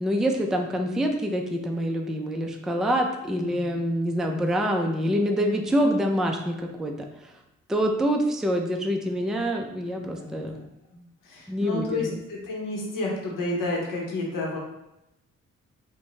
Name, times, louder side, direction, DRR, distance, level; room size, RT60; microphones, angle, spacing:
voice 1, 0.0-6.9 7.7-10.6 11.5-12.1, equal, ahead, 3 dB, 0.3 m, -26 dB
voice 2, 3.4-3.8 10.0-10.7 10.9-14.6, left 2 dB, 75° left, -2 dB, 0.8 m, -31 dB
2.5 x 2.1 x 3.0 m, 0.89 s
supercardioid pair, 50°, 32 cm